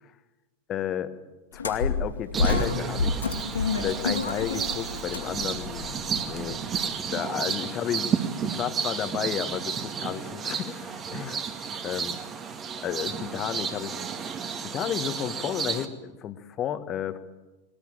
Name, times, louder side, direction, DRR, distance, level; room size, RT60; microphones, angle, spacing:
voice 1, 0.7-1.1 1.5-6.8 7.1-8.1 8.4-11.4 11.8-12.2 12.8-14.1 14.6-17.2, left 10 dB, 30° left, 11 dB, 1.5 m, -32 dB
sound 1, 1.5-6.8, left 4 dB, 75° left, 2.8 m, -29 dB
sound 2, 2.3-15.9, right 7 dB, 25° right, 2.1 m, -32 dB
21.0 x 19.5 x 9.0 m, 1.1 s
figure-of-eight pair, 90°, 0 cm